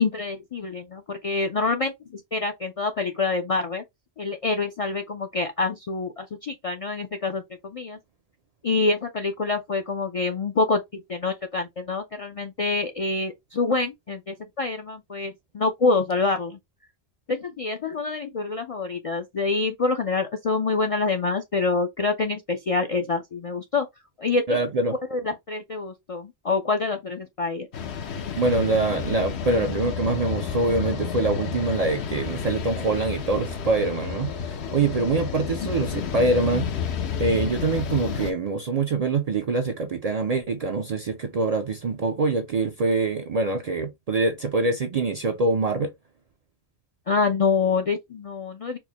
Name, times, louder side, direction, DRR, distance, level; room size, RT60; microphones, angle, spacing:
voice 1, 0.0-3.8 4.2-8.0 8.6-16.6 17.3-23.9 24.2-24.6 25.1-27.7 47.1-48.8, left 4 dB, 55° left, 0.4 m, -26 dB
voice 2, 24.5-25.0 28.3-36.7 37.2-45.9, right 3 dB, 55° right, 0.4 m, -24 dB
sound 1, 27.7-38.3, left 7 dB, 75° left, 1.0 m, -31 dB
4.4 x 2.1 x 2.8 m
omnidirectional pair, 1.1 m